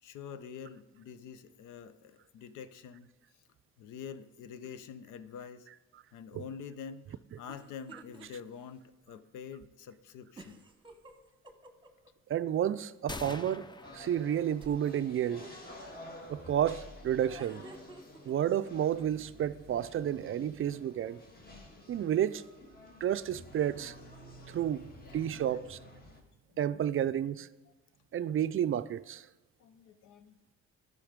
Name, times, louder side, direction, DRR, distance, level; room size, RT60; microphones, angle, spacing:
voice 1, 0.0-3.1 3.8-5.7 6.1-10.6 25.3-25.6 26.5-26.9 28.2-28.4 29.6-30.4, left 7 dB, 85° left, 0.7 m, -46 dB
sound 1, 7.5-8.3 8.7-8.8 10.4-12.1 14.6-15.2 17.2-18.3, right 3 dB, 15° right, 1.0 m, -51 dB
voice 2, 12.3-13.7 13.9-15.5 16.3-17.6 18.2-21.2 21.9-22.4 23.0-24.0 24.5-24.8 25.1-25.8 26.6-27.5 28.1-29.3, right 10 dB, 45° right, 0.4 m, -31 dB
sound 2, 13.1-15.0, left 2 dB, 15° left, 0.5 m, -45 dB
sound 3, 13.8-26.2, left 1 dB, 30° left, 1.6 m, -51 dB
12.0 x 5.3 x 5.1 m
cardioid pair, 90°, 30 cm